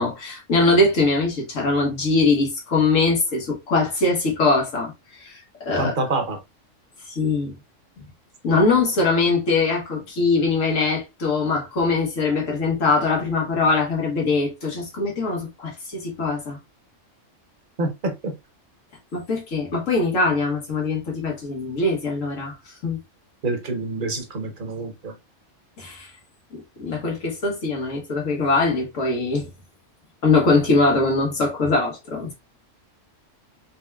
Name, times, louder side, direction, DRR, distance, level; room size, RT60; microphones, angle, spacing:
voice 1, 0.0-4.9 5.2-5.9 7.1-7.5 8.4-16.6 19.1-22.5 22.8-23.0 25.8-26.1 26.8-29.5 30.2-32.3, left 3 dB, 85° left, 1.7 m, -22 dB
voice 2, 5.8-6.4 17.8-18.3 23.4-25.1, right 2 dB, 45° right, 1.0 m, -26 dB
4.4 x 3.2 x 2.3 m
omnidirectional pair, 1.3 m